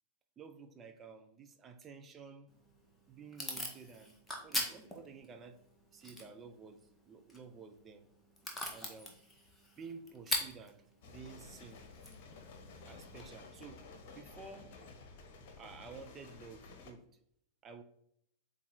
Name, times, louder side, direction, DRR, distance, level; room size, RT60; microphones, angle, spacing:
voice 1, 0.4-2.5 3.1-5.6 5.9-8.0 8.7-9.2 9.8-11.8 12.8-13.8 14.1-14.8 15.6-17.1 17.6-17.8, right 5 dB, 25° right, 0.8 m, -52 dB
Packing tape duct tape / Tearing, 2.5-13.3, left 1 dB, 5° left, 1.6 m, -44 dB
sound 1, 11.0-16.9, left 3 dB, 45° left, 1.3 m, -53 dB
8.4 x 3.6 x 4.0 m
figure-of-eight pair, 90°, 0 cm